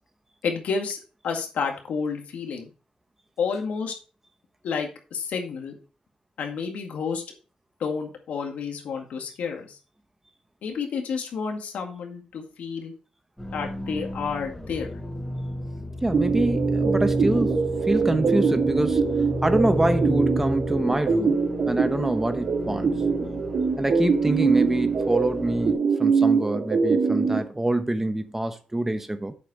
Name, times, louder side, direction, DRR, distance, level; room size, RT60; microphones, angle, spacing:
voice 1, 0.4-1.0 1.2-2.7 3.4-3.9 4.6-5.7 6.4-7.2 7.8-9.8 10.6-12.9 13.5-15.0, left 5 dB, 90° left, 2.0 m, -30 dB
sound 1, 13.4-25.7, left 1 dB, 5° left, 4.3 m, -32 dB
voice 2, 16.0-19.1 19.4-22.9 23.8-29.3, right 1 dB, 15° right, 1.1 m, -26 dB
sound 2, 16.1-27.4, right 5 dB, 75° right, 2.9 m, -24 dB
8.4 x 7.0 x 4.2 m
cardioid pair, 90°, 2 cm